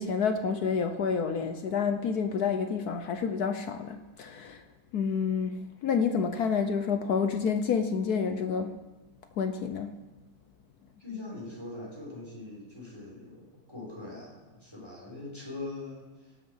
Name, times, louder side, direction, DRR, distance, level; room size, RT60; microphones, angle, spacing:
voice 1, 0.0-4.6 4.9-8.8 9.4-10.0, left 6 dB, 65° left, 8 dB, 1.0 m, -29 dB
voice 2, 11.0-16.3, left 2 dB, 10° left, -5 dB, 5.1 m, -42 dB
18.0 x 8.2 x 5.6 m, 1.1 s
omnidirectional pair, 2.3 m